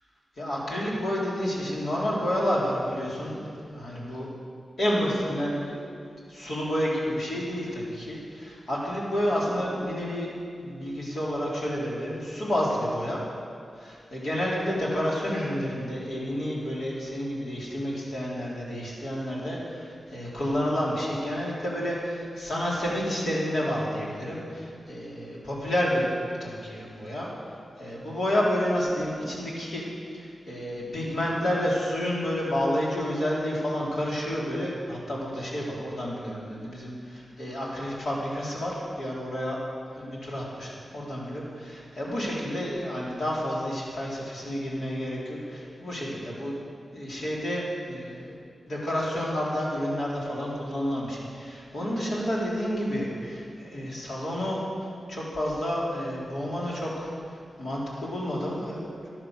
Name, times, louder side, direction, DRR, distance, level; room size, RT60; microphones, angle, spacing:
voice 1, 0.4-4.3 4.8-13.2 13.8-26.1 26.4-27.3 27.8-29.8 30.1-39.6 39.9-46.5 46.9-48.3 48.7-54.6 55.1-59.1, equal, 70° left, -5 dB, 4.2 m, -30 dB
12.0 x 11.5 x 6.7 m, 2.3 s
cardioid pair, 60°, 0 cm